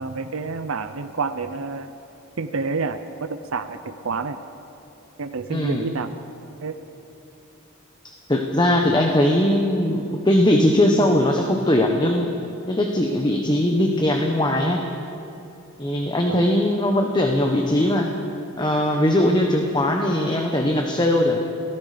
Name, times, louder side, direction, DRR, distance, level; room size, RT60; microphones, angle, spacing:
voice 1, 0.0-1.9 2.4-4.4 5.2-6.2 6.6-6.8 8.8-9.0 16.3-16.4, right 4 dB, 80° right, 8 dB, 0.7 m, -29 dB
voice 2, 5.5-5.8 8.0-12.3 12.7-14.8 15.8-18.1 18.6-21.4, left 1 dB, 20° left, 3 dB, 1.2 m, -20 dB
28.0 x 18.0 x 5.2 m, 2.8 s
head